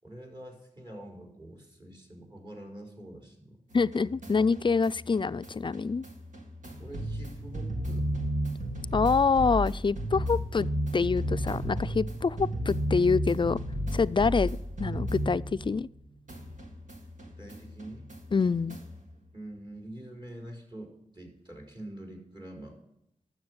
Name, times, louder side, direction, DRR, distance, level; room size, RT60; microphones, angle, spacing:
voice 1, 0.0-3.6 6.8-8.1 17.3-18.1 19.3-22.8, right 1 dB, 35° right, 1 dB, 4.5 m, -45 dB
voice 2, 3.7-6.0 8.9-10.7 10.9-13.6 13.9-15.9 18.3-18.8, left 4 dB, 40° left, 16 dB, 0.4 m, -26 dB
sound 1, 3.7-16.0 16.3-19.0, equal, 80° right, 2.1 m, -34 dB
12.0 x 7.3 x 8.1 m, 0.78 s
cardioid pair, 45°, 13 cm